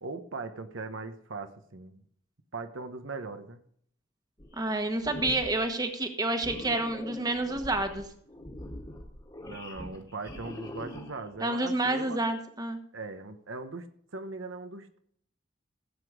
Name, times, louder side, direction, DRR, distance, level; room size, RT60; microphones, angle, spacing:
voice 1, 0.0-2.1 2.5-3.6 9.5-12.2 12.9-13.9 14.1-15.0, right 3 dB, 80° right, 7 dB, 1.1 m, -39 dB
sound 1, 4.4-4.8 5.0-5.6 6.4-11.4, left 1 dB, 20° left, 1.8 m, -43 dB
voice 2, 4.6-8.1 11.4-12.8, right 2 dB, 20° right, 6 dB, 1.3 m, -29 dB
15.5 x 8.2 x 5.0 m, 0.63 s
head